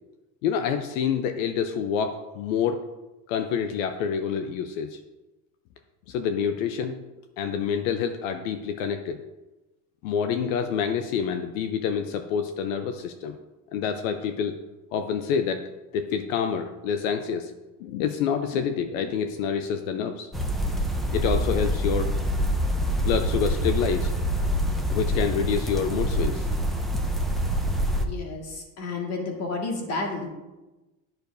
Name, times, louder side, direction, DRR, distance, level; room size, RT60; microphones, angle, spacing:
voice 1, 0.4-2.9 3.3-5.0 6.1-7.0 7.4-9.2 10.0-13.4 13.7-14.6 14.9-15.6 15.9-17.5 17.8-20.3 21.1-22.1 23.0-24.1 24.9-26.5, left 7 dB, 85° left, 8 dB, 0.7 m, -27 dB
sound 1, 20.3-28.1, equal, ahead, 0.6 m, -26 dB
voice 2, 28.0-30.3, left 3 dB, 40° left, 1 dB, 1.9 m, -31 dB
10.5 x 6.6 x 2.6 m, 1.1 s
supercardioid pair, 125°, 38 cm